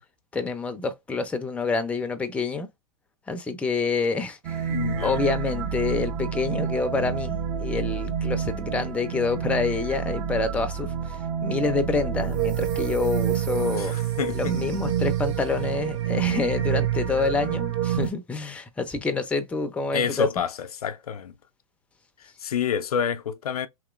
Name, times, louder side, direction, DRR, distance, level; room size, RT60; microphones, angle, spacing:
voice 1, 0.3-2.7 3.3-4.6 5.0-13.9 14.3-20.3, left 4 dB, 5° left, 0.4 m, -27 dB
sound 1, 4.4-18.1, right 9 dB, 50° right, 0.7 m, -28 dB
voice 2, 4.7-5.2 13.7-14.7 19.9-21.3 22.4-23.7, left 8 dB, 85° left, 0.4 m, -28 dB
2.9 x 2.9 x 2.4 m
hypercardioid pair, 110°, 19 cm